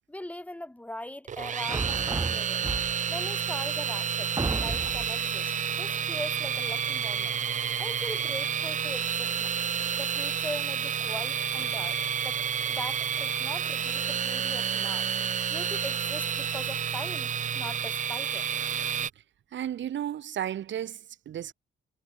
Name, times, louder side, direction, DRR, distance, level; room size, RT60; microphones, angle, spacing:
voice 1, 0.1-2.7 3.1-5.5 5.8-7.4 7.8-9.5 9.9-12.0 12.2-12.4 12.6-15.1 15.5-18.5, left 1 dB, 5° left, 2.9 m, -40 dB
sound 1, 1.3-19.1, right 8 dB, 40° right, 0.6 m, -30 dB
sound 2, 1.7-3.2 3.8-3.9 4.4-5.2, right 3 dB, 20° right, 4.0 m, -32 dB
voice 2, 19.5-21.5, right 10 dB, 70° right, 4.1 m, -33 dB
cardioid pair, 90°, 20 cm